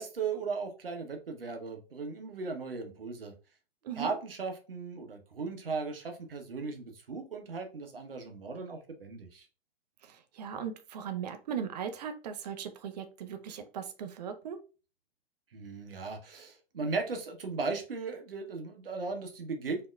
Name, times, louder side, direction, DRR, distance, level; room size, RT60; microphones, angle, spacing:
voice 1, 0.0-3.3 4.0-9.5 15.5-19.9, right 4 dB, 70° right, 4 dB, 0.9 m, -37 dB
voice 2, 10.0-14.6, right 8 dB, 45° right, 8 dB, 0.6 m, -38 dB
4.4 x 2.8 x 2.3 m, 0.35 s
figure-of-eight pair, 105°, 30 cm